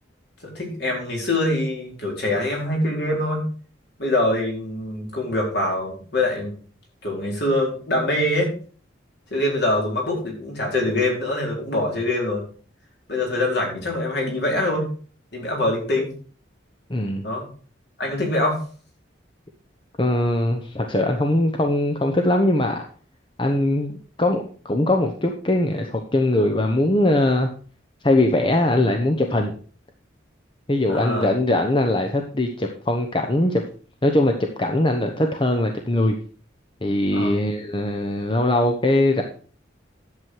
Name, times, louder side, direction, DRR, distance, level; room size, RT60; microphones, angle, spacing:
voice 1, 0.4-3.5 4.0-6.6 7.0-8.5 9.3-12.5 13.1-14.8 15.3-16.1 17.2-17.4 18.0-18.6 30.9-31.3 37.1-37.4, left 1 dB, 60° left, -1 dB, 4.2 m, -24 dB
voice 2, 16.9-17.3 20.0-22.8 23.4-27.5 28.0-29.5 30.7-33.6 34.0-36.1 36.8-39.2, left 1 dB, 25° left, 4 dB, 0.9 m, -21 dB
11.0 x 7.5 x 4.7 m, 0.42 s
head